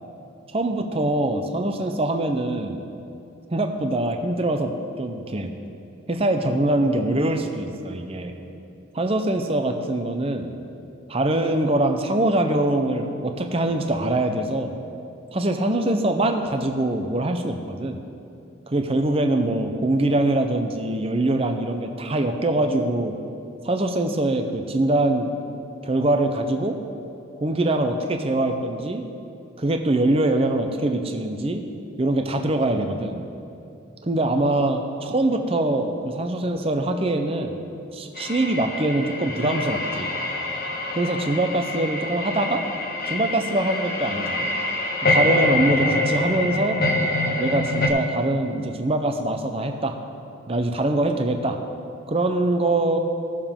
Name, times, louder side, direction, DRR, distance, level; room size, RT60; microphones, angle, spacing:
voice 1, 0.5-2.8 3.5-5.5 6.1-8.3 8.9-10.5 11.1-14.7 15.3-18.0 18.7-23.1 23.6-25.3 25.8-26.8 27.4-29.0 29.6-31.6 32.0-33.2 34.0-37.6 37.9-40.1 40.9-42.6 43.1-44.5 45.0-46.8 47.4-50.0 50.5-51.6 52.1-53.0, right 1 dB, 25° right, 5 dB, 0.6 m, -23 dB
sound 1, 38.1-47.9, left 2 dB, 45° left, 0.9 m, -25 dB
16.5 x 6.9 x 3.7 m, 2.7 s
head